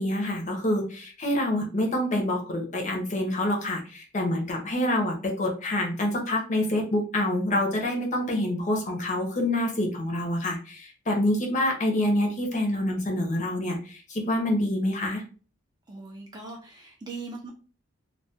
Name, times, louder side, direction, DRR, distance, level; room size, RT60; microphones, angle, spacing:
voice 1, 0.0-15.2, left 1 dB, 35° left, 1 dB, 0.6 m, -27 dB
voice 2, 15.9-17.5, right 3 dB, 20° right, 0 dB, 0.3 m, -40 dB
2.2 x 2.2 x 2.7 m, 0.38 s
head